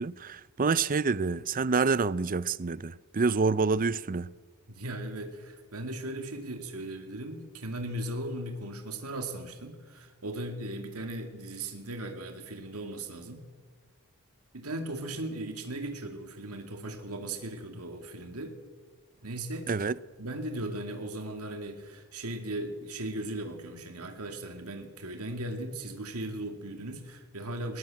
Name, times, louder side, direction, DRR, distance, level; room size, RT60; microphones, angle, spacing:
voice 1, 0.0-4.3 19.7-19.9, right 4 dB, 40° right, 0.6 m, -27 dB
voice 2, 4.7-13.5 14.5-18.6 19.2-19.8 20.2-27.8, right 1 dB, 75° right, 2.4 m, -37 dB
20.5 x 20.5 x 7.7 m
head